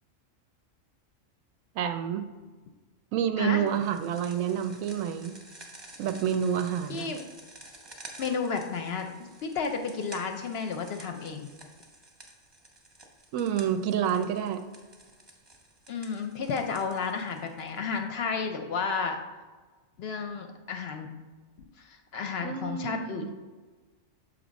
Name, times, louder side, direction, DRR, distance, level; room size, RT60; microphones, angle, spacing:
voice 1, 1.7-2.2 3.1-5.4 6.0-7.1 13.3-14.6 22.4-23.3, right 9 dB, 85° right, 7 dB, 1.0 m, -28 dB
sound 1, 3.7-18.0, right 2 dB, 25° right, 0.8 m, -51 dB
voice 2, 8.2-9.1 9.4-11.5 15.9-19.2 20.0-21.2 21.8-23.3, left 5 dB, 60° left, 5 dB, 0.7 m, -32 dB
6.6 x 3.1 x 5.1 m, 1.3 s
omnidirectional pair, 1.3 m